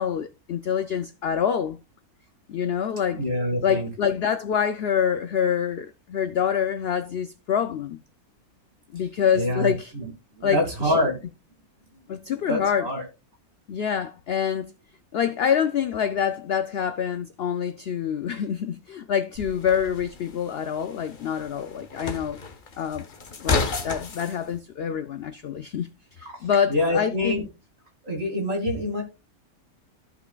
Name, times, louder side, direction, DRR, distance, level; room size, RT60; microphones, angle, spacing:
voice 1, 0.0-1.8 2.5-3.2 3.6-8.0 8.9-9.9 10.4-11.0 12.1-12.9 13.7-14.7 15.1-22.4 22.8-23.1 23.4-25.9 26.2-27.5, left 8 dB, 80° left, 0.5 m, -26 dB
voice 2, 3.1-3.9 9.4-10.1 10.4-11.2 12.5-13.1 26.7-27.4 28.0-29.0, left 1 dB, 40° right, 2.5 m, -25 dB
sound 1, 19.3-24.4, left 4 dB, 40° left, 1.0 m, -32 dB
14.5 x 5.6 x 2.3 m
omnidirectional pair, 1.6 m